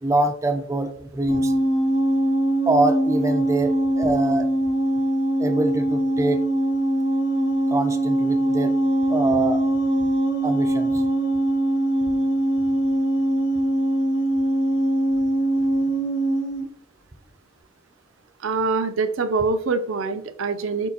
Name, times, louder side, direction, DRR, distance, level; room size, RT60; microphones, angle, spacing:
voice 1, 0.0-1.5 2.7-4.5 5.4-6.4 7.7-8.7 9.1-9.6 10.4-11.0, right 2 dB, 15° right, 7 dB, 0.3 m, -24 dB
sound 1, 1.3-16.7, right 1 dB, 60° left, 0.7 m, -22 dB
voice 2, 18.4-20.9, right 4 dB, 75° right, 10 dB, 0.5 m, -24 dB
4.5 x 4.2 x 2.7 m, 0.64 s
head